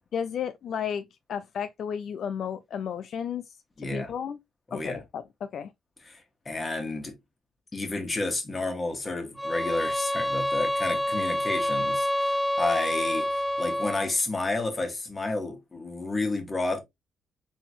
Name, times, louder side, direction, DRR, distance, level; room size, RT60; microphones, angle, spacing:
voice 1, 0.1-4.4 4.7-5.7, left 8 dB, 65° left, 0.3 m, -33 dB
voice 2, 3.8-4.1 4.7-5.0 6.1-7.1 7.7-16.8, left 2 dB, 25° left, 1.5 m, -31 dB
sound 1, 9.4-14.1, left 1 dB, ahead, 0.4 m, -27 dB
4.0 x 3.8 x 3.0 m
cardioid pair, 90°, 0 cm